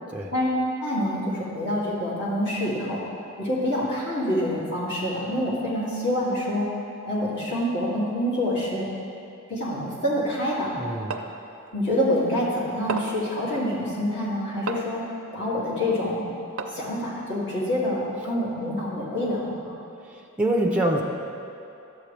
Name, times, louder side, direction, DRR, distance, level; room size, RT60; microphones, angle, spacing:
voice 1, 0.8-3.0 3.4-6.7 7.0-8.9 9.5-10.7 11.7-15.0 15.3-16.3 16.7-19.7, left 1 dB, 55° left, -8 dB, 2.4 m, -26 dB
voice 2, 10.8-11.1 20.0-21.0, right 1 dB, 5° right, 0 dB, 0.6 m, -25 dB
sound 1, 11.1-11.4 12.9-13.3 14.7-15.0 16.6-17.0, right 4 dB, 80° right, 0.6 m, -32 dB
12.0 x 7.8 x 3.4 m, 2.7 s
head